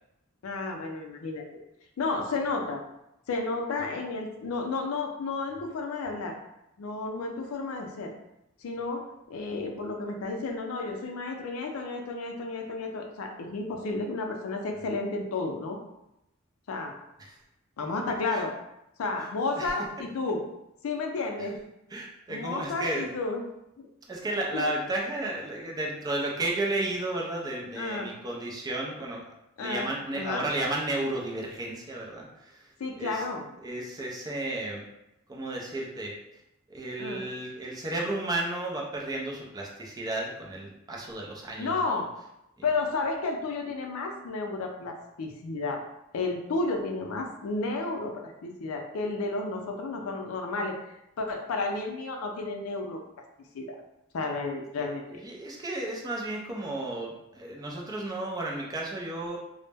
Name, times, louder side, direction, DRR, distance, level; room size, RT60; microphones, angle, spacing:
voice 1, 0.4-1.4 2.0-2.8 3.3-6.4 6.8-8.1 8.6-15.8 16.7-16.9 17.8-18.5 19.0-20.4 20.8-21.6 22.3-23.5 23.8-23.9 24.5-24.7 27.8-28.1 29.6-30.5 32.8-33.4 37.0-37.2 41.6-42.1 42.6-45.8 46.1-53.0 53.5-53.8 54.1-55.0, left 3 dB, 90° left, 3 dB, 0.4 m, -32 dB
voice 2, 21.9-23.1 24.1-29.2 29.6-32.7 33.0-33.2 33.6-34.8 35.3-36.1 36.7-42.0 55.1-59.4, right 2 dB, 20° right, -2 dB, 0.4 m, -33 dB
2.0 x 2.0 x 3.3 m, 0.86 s
head